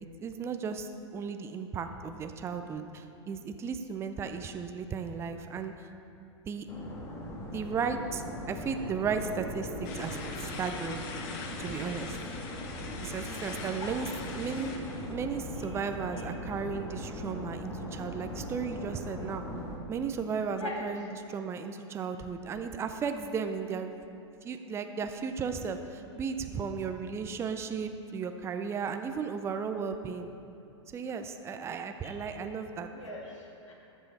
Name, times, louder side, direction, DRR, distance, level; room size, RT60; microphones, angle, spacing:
voice 1, 0.2-5.9 6.5-6.7 7.5-11.0 11.6-12.1 13.0-14.1 14.4-14.7 15.1-19.4 19.9-23.9 24.4-30.3 30.9-32.9, right 6 dB, 15° right, 7 dB, 0.5 m, -35 dB
sound 1, 6.7-19.8, left 1 dB, 20° left, 1.5 m, -40 dB
sound 2, 9.8-15.1, left 4 dB, 45° left, 1.1 m, -43 dB
voice 2, 32.9-33.7, left 2 dB, 85° left, -2 dB, 2.1 m, -41 dB
14.0 x 5.6 x 4.1 m, 2.7 s
hypercardioid pair, 115°, 15 cm